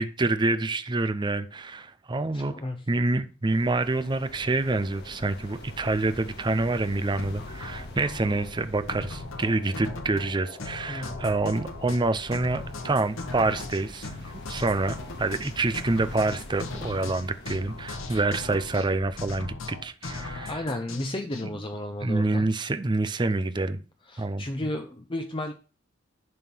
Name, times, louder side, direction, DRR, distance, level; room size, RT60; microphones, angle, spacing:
voice 1, 0.0-2.5 2.9-20.6 22.0-23.8 24.2-24.5, right 2 dB, 25° right, 0.5 m, -27 dB
voice 2, 2.3-2.8 10.9-11.1 20.5-22.5 24.1-25.5, left 1 dB, 25° left, 0.7 m, -33 dB
sound 1, 3.4-18.0, left 2 dB, 55° left, 2.2 m, -46 dB
sound 2, 7.2-21.4, left 2 dB, 90° left, 1.4 m, -38 dB
11.0 x 3.7 x 6.1 m
head